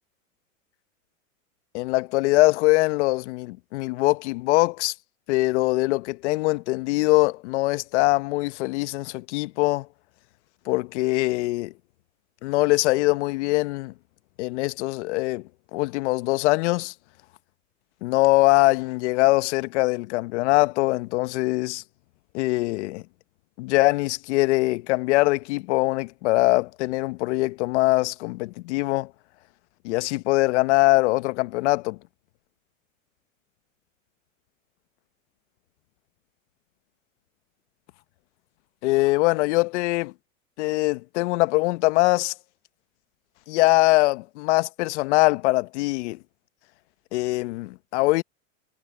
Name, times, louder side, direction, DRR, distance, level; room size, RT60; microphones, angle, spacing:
voice 1, 1.7-4.9 5.3-9.9 10.7-11.7 12.4-13.9 14.4-15.4 15.7-16.9 18.0-21.8 22.3-23.0 23.6-29.1 29.8-32.0 38.8-40.1 40.6-42.3 43.5-46.2 47.1-48.2, left 21 dB, 60° left, 1.1 m, -22 dB
hypercardioid pair, 120°, 40 cm